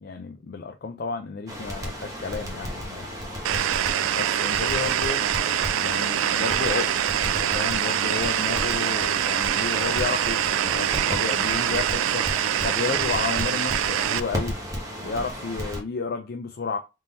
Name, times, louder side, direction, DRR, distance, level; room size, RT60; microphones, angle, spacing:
voice 1, 0.0-3.2 4.2-5.2 5.7-12.3 12.6-14.6 15.0-16.8, left 5 dB, 50° left, 0.4 m, -32 dB
Crackle, 1.5-15.8, equal, 15° right, 1.1 m, -34 dB
sound 1, 3.4-14.2, right 10 dB, 85° right, 0.3 m, -24 dB
3.7 x 2.7 x 4.0 m
head